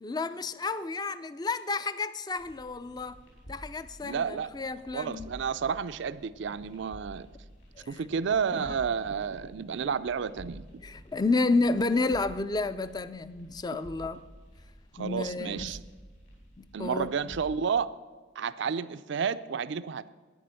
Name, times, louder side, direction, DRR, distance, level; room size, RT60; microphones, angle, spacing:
voice 1, 0.0-3.2 3.5-5.3 7.8-8.0 8.6-8.7 10.8-14.2 15.0-15.7 16.8-17.1, left 3 dB, 20° left, 0.4 m, -30 dB
sound 1, 2.4-17.6, equal, 60° left, 4.3 m, -51 dB
voice 2, 4.0-4.5 4.9-7.3 7.9-10.6 15.0-15.8 16.7-17.9 18.4-20.1, right 6 dB, 60° right, 0.4 m, -31 dB
11.0 x 9.5 x 7.6 m
head